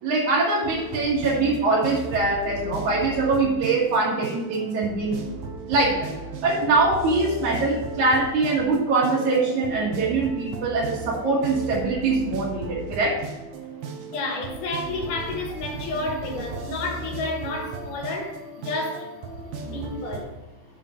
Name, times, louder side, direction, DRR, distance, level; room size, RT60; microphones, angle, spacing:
voice 1, 0.0-5.2 5.7-6.1 6.4-13.2, right 3 dB, 65° right, 3.0 m, -23 dB
sound 1, 0.6-20.3, right 3 dB, 85° right, 2.7 m, -36 dB
voice 2, 14.1-19.1 19.6-20.3, left 2 dB, 75° left, 3.0 m, -30 dB
7.2 x 5.9 x 6.5 m
omnidirectional pair, 3.8 m